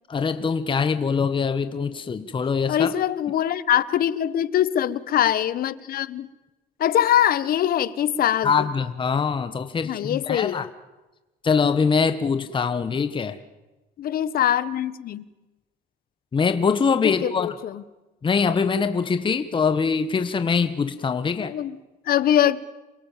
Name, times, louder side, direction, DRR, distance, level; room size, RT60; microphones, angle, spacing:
voice 1, 0.1-2.9 8.4-10.7 11.4-13.4 16.3-17.5 18.2-21.5, left 5 dB, 30° left, 10 dB, 1.5 m, -23 dB
voice 2, 2.7-6.3 6.8-8.7 9.8-10.7 14.0-15.3 17.0-17.8 21.4-21.8 22.0-22.6, left 11 dB, 60° left, 17 dB, 1.4 m, -23 dB
28.5 x 23.5 x 7.5 m, 1.1 s
cardioid pair, 110°, 17 cm